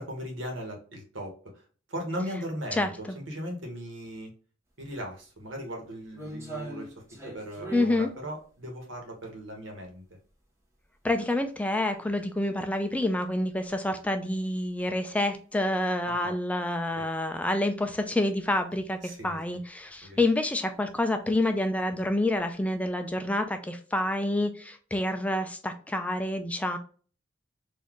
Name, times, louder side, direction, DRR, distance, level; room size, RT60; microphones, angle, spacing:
voice 1, 0.0-1.3 1.9-4.3 4.8-6.9 7.2-10.0 16.0-16.3 17.0-17.1 19.0-19.4 20.0-20.2, equal, 85° right, 2 dB, 1.2 m, -38 dB
voice 2, 2.7-3.2 7.7-8.1 11.0-26.8, left 1 dB, 5° left, 7 dB, 0.3 m, -28 dB
sound 1, 4.8-4.9 5.4-10.4 10.8-10.9 11.6-11.8 12.1-12.2 13.1-13.2 13.5-13.7 14.2-14.4 14.7-14.8 16.9-17.0 18.3-18.6 19.0-19.4 19.8-20.0 20.3-20.4 21.4-21.6 22.2-22.9 23.3-23.4, right 2 dB, 15° right, 1.0 m, -42 dB
4.0 x 2.6 x 3.0 m, 0.40 s
head